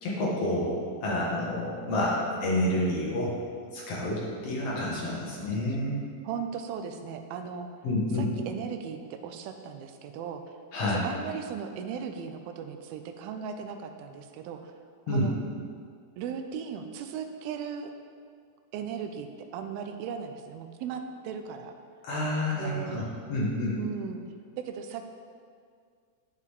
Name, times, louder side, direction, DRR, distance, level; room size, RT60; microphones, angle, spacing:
voice 1, 0.0-3.4 3.7-6.0 7.8-8.3 10.7-11.0 15.1-15.3 22.0-23.8, left 1 dB, 55° left, -5 dB, 1.8 m, -29 dB
voice 2, 4.6-5.6 6.2-7.7 8.1-10.4 10.8-14.7 15.1-15.4 16.2-17.9 18.7-21.7 22.6-23.1 23.7-24.2 24.6-25.1, right 7 dB, 90° right, 6 dB, 2.4 m, -37 dB
9.6 x 6.5 x 3.5 m, 2.1 s
omnidirectional pair, 4.2 m